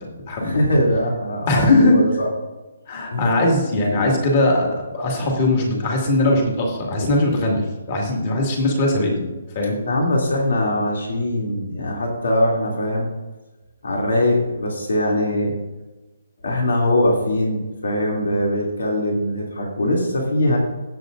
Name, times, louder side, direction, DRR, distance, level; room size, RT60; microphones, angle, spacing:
voice 1, 0.4-2.3 3.1-3.2 9.8-13.1 13.8-15.5 16.4-20.6, left 1 dB, 90° left, -1 dB, 2.8 m, -21 dB
voice 2, 1.5-2.0 2.9-9.3 9.6-9.8, left 2 dB, 25° left, 0 dB, 2.1 m, -20 dB
18.0 x 7.7 x 2.6 m, 1.2 s
hypercardioid pair, 180°, 0 cm